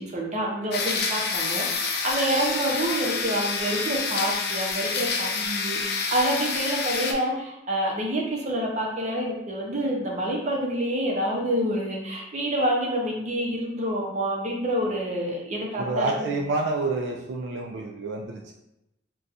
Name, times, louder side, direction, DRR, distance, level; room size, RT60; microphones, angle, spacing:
voice 1, 0.0-16.3, right 1 dB, 40° right, -1 dB, 0.7 m, -27 dB
sound 1, 0.7-7.1, left 4 dB, 60° left, 0.4 m, -28 dB
voice 2, 15.8-18.5, right 2 dB, 80° right, 1 dB, 0.3 m, -28 dB
2.5 x 2.3 x 4.0 m, 0.88 s
head